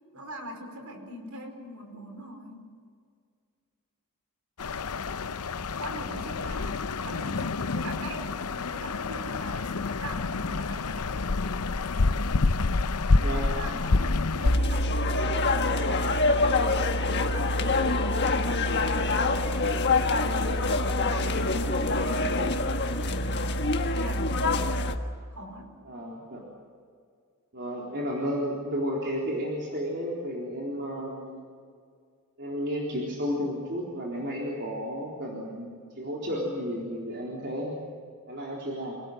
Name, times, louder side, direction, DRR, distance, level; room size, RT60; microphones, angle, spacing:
voice 1, 0.1-2.7 5.8-11.3 13.1-16.6 17.0-20.5 20.9-24.8 25.3-25.8, equal, 70° right, 4 dB, 5.0 m, -42 dB
sound 1, 4.6-14.6, left 3 dB, 85° left, 0.8 m, -28 dB
voice 2, 13.2-13.5 25.9-26.4 27.5-31.4 32.4-35.7 36.0-37.8 38.3-39.0, equal, 50° right, -3 dB, 3.9 m, -32 dB
sound 2, 14.4-25.0, left 2 dB, 50° left, 1.5 m, -25 dB
27.0 x 18.0 x 8.1 m, 2.1 s
head